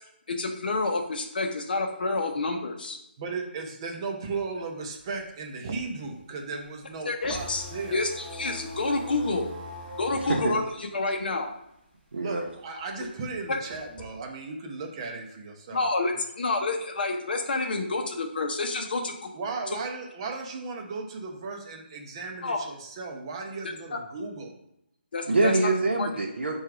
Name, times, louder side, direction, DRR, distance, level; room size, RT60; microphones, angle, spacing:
voice 1, 0.3-3.0 7.0-7.6 7.9-9.5 10.0-11.5 13.5-13.6 15.7-19.3 22.4-22.6 25.1-25.6 26.0-26.1, left 3 dB, 55° left, 4 dB, 0.7 m, -28 dB
voice 2, 3.2-8.0 12.2-15.8 19.3-24.6, right 4 dB, 25° right, 2 dB, 0.6 m, -36 dB
sound 1, 4.8-11.9 12.3-14.0, equal, 10° left, 1.2 m, -41 dB
voice 3, 12.1-12.4 25.2-26.6, right 2 dB, 80° right, -1 dB, 0.8 m, -25 dB
4.5 x 2.4 x 4.7 m, 0.79 s
hypercardioid pair, 165°, 6 cm